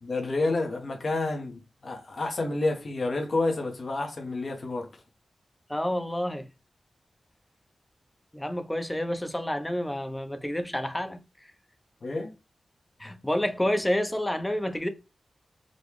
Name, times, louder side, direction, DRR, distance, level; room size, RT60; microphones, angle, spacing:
voice 1, 0.0-5.0 12.0-12.3, left 2 dB, 60° left, 1.1 m, -29 dB
voice 2, 5.7-6.5 8.3-11.2 13.0-14.9, left 1 dB, 15° left, 0.7 m, -29 dB
4.0 x 2.3 x 3.2 m
cardioid pair, 65°, 0 cm